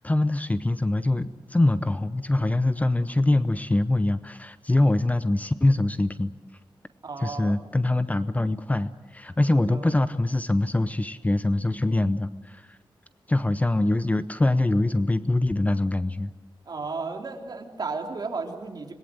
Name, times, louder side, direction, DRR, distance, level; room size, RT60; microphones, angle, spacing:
voice 1, 0.0-6.3 7.2-12.8 13.3-16.3, left 2 dB, 15° left, 13 dB, 0.7 m, -24 dB
voice 2, 7.0-7.6 9.7-9.9 16.7-18.9, right 4 dB, 50° right, 2 dB, 3.5 m, -34 dB
26.5 x 20.5 x 7.9 m, 1.2 s
wide cardioid pair, 115°, 9 cm